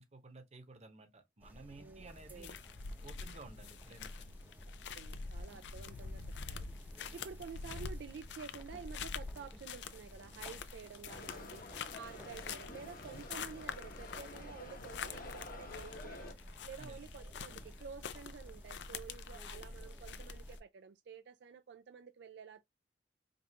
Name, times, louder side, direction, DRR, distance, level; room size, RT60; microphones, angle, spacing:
voice 1, 0.0-2.6 3.0-4.3 16.8-17.0, right 2 dB, 40° right, 0.9 m, -54 dB
sound 1, 1.4-20.6, equal, 10° right, 0.6 m, -54 dB
voice 2, 1.8-2.5 4.7-11.6 11.9-22.6, right 6 dB, 70° right, 0.4 m, -51 dB
sound 2, 2.1-20.6, left 5 dB, 80° left, 0.5 m, -47 dB
sound 3, 11.0-16.3, left 2 dB, 55° left, 1.0 m, -50 dB
5.2 x 2.5 x 2.8 m
head